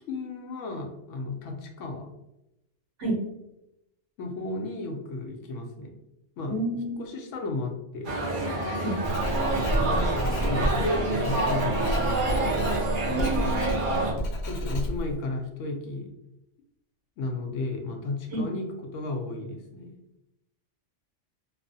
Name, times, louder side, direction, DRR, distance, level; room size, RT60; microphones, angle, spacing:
voice 1, 0.1-2.1 4.2-6.0 6.4-6.5 7.0-8.1 10.5-12.2 14.4-16.1 17.2-20.0, left 2 dB, 85° left, 3 dB, 1.0 m, -33 dB
voice 2, 6.5-7.0 8.8-9.0 13.1-13.7 18.3-18.5, right 1 dB, 75° right, -2 dB, 1.2 m, -29 dB
sound 1, 8.0-14.1, right 2 dB, 50° right, 0.8 m, -27 dB
Writing, 9.0-15.2, equal, 65° left, 0.4 m, -30 dB
2.9 x 2.0 x 2.6 m, 0.87 s
omnidirectional pair, 1.3 m